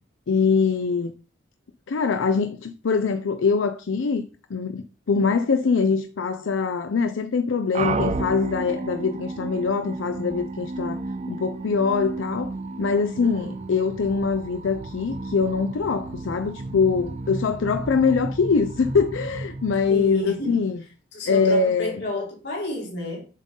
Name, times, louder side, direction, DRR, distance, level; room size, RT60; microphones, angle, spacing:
voice 1, 0.3-1.1 1.9-11.0 11.3-12.5 12.8-20.8 21.3-22.0, left 5 dB, 80° left, 0.5 m, -23 dB
sound 1, 7.8-20.6, right 3 dB, 35° right, 0.4 m, -33 dB
voice 2, 19.9-20.6 21.1-23.2, left 1 dB, 60° left, 3.0 m, -31 dB
7.4 x 3.8 x 5.2 m
head